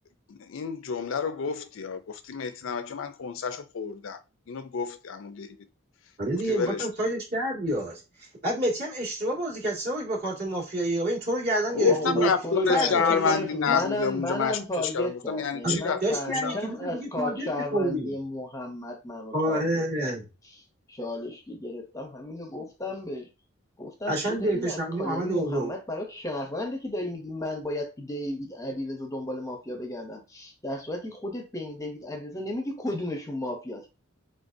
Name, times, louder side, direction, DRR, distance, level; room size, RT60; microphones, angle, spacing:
voice 1, 0.3-4.2 4.5-5.6 6.5-6.9 11.8-16.6, left 6 dB, 70° left, 0.5 m, -29 dB
voice 2, 6.2-12.3 12.7-13.3 13.6-13.9 15.6-18.1 19.3-20.3 24.1-25.7, right 1 dB, 50° right, 2.2 m, -28 dB
voice 3, 11.7-20.1 20.9-23.3 23.8-33.9, left 1 dB, 15° left, 0.7 m, -34 dB
3.9 x 3.8 x 2.6 m
head